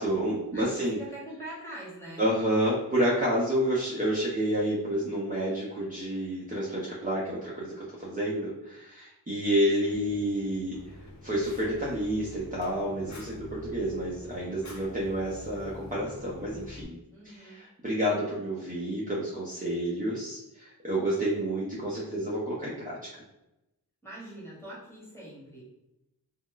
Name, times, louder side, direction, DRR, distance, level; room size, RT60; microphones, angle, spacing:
voice 1, 0.0-1.0 2.2-10.8 11.2-17.0 17.2-23.0, right 1 dB, 20° right, -6 dB, 0.6 m, -29 dB
voice 2, 0.5-2.2 17.1-17.6 24.0-25.6, right 1 dB, 5° left, -6 dB, 1.3 m, -43 dB
Fire, 10.7-16.8, left 2 dB, 45° left, 0.5 m, -46 dB
2.3 x 2.1 x 3.8 m, 0.90 s
wide cardioid pair, 45°, 39 cm